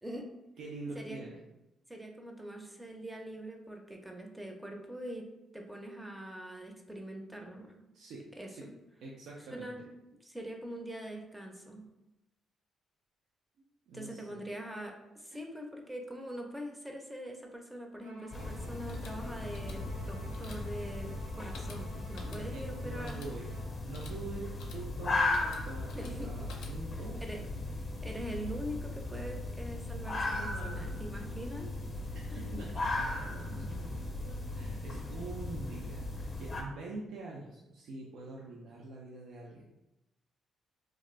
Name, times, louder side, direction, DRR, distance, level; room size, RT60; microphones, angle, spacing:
voice 1, 0.6-1.4 7.9-8.7 9.0-9.7 13.9-14.3 22.2-23.5 23.8-27.5 30.1-31.4 32.1-39.7, right 3 dB, 80° right, -3 dB, 0.4 m, -45 dB
voice 2, 1.9-7.7 8.4-8.7 9.5-9.8 10.2-11.9 13.9-23.2 25.9-26.5 27.2-27.4 28.0-31.7 32.3-32.6, right 1 dB, 10° right, 2 dB, 0.5 m, -43 dB
Bowed string instrument, 18.0-23.7, equal, 65° right, 0.9 m, -53 dB
sound 1, 18.3-36.6, left 2 dB, 35° left, 0.6 m, -37 dB
sound 2, 18.8-27.1, left 3 dB, 90° left, 0.4 m, -53 dB
2.5 x 2.4 x 3.1 m, 0.93 s
cardioid pair, 90°, 0 cm